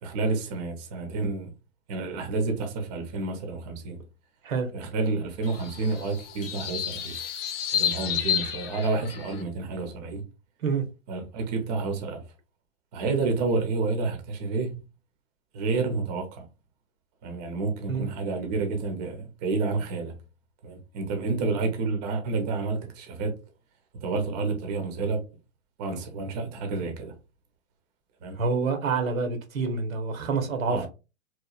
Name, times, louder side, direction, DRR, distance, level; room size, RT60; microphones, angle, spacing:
voice 1, 0.0-1.5 1.9-4.0 4.7-7.3 7.7-10.2 11.1-12.2 12.9-14.8 15.5-16.5 17.2-20.1 20.6-23.4 24.0-25.2 25.8-27.1 28.2-28.4 30.7-30.9, right 3 dB, 35° right, 0.6 m, -29 dB
sound 1, 5.4-9.4, left 9 dB, 45° left, 0.5 m, -31 dB
voice 2, 28.4-30.9, right 4 dB, 90° right, 0.9 m, -27 dB
3.0 x 2.1 x 2.3 m
hypercardioid pair, 140°, 40 cm